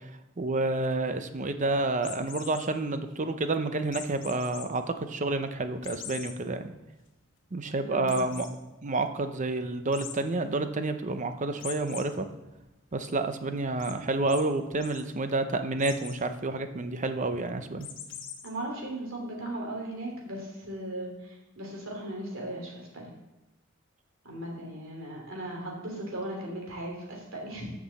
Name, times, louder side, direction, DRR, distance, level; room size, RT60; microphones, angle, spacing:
voice 1, 0.4-6.7 7.5-8.5 8.8-12.3 12.9-17.9, right 2 dB, 40° right, 9 dB, 0.7 m, -29 dB
sound 1, 2.0-2.7 3.9-4.6 5.1-5.2 5.8-6.3 6.8-6.9 7.2-7.3 8.1-8.5 9.9-10.1 11.6-12.0 12.5-13.1 13.8-13.9 14.3-14.4 14.7-15.0 15.8-16.2 17.8-18.5, left 8 dB, 65° left, 1.3 m, -42 dB
voice 2, 7.9-8.3 18.4-23.0 24.2-27.7, right 1 dB, 75° right, -2 dB, 3.1 m, -37 dB
6.9 x 6.1 x 7.5 m, 0.98 s
head